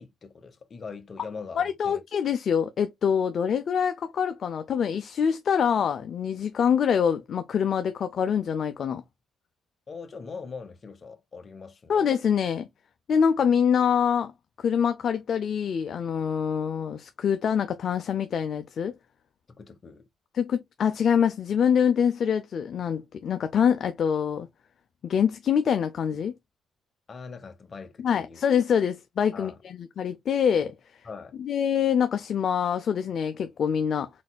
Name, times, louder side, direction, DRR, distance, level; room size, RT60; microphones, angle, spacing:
voice 1, 0.0-2.0 9.9-12.1 19.6-20.0 27.1-28.4 29.3-29.6 31.0-31.3, left 5 dB, 40° left, 1.0 m, -41 dB
voice 2, 1.6-9.0 11.9-12.7 13.1-14.3 14.6-18.9 20.3-24.5 25.0-26.3 28.0-30.7 31.4-34.1, left 7 dB, 55° left, 0.5 m, -25 dB
4.4 x 4.1 x 2.3 m
cardioid pair, 90°, 0 cm